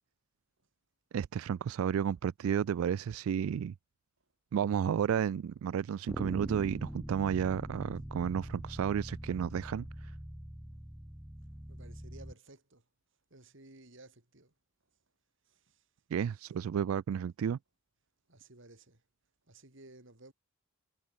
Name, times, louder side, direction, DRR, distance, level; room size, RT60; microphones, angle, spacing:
voice 1, 1.1-3.7 4.5-10.1 16.1-17.6, right 8 dB, 75° right, 0.3 m, -32 dB
Bass guitar, 6.1-12.3, equal, 5° right, 0.6 m, -43 dB
voice 2, 11.5-12.9 13.3-14.5 15.4-15.9 18.3-19.0 19.5-20.3, right 2 dB, 60° right, 3.5 m, -56 dB
head